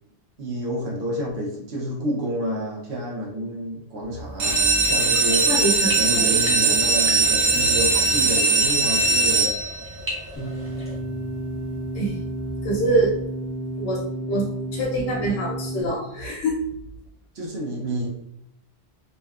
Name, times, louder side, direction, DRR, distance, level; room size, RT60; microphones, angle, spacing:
voice 1, 0.4-5.5 5.8-9.5 17.3-18.1, equal, 75° right, -2 dB, 0.9 m, -29 dB
sound 1, 4.3-10.0 10.6-11.1 11.5-11.6 11.9-12.0 12.4-12.5, right 3 dB, 55° right, 0.6 m, -20 dB
sound 2, 4.8-10.9, left 1 dB, 15° right, 0.7 m, -37 dB
voice 2, 5.5-6.3 11.9-12.1 12.6-13.1 13.8-14.0 14.3-14.5 14.7-16.6, right 1 dB, 90° left, -2 dB, 0.9 m, -24 dB
sound 3, 10.4-15.8, right 1 dB, 25° left, 1.0 m, -31 dB
2.7 x 2.2 x 2.3 m, 0.72 s
omnidirectional pair, 1.1 m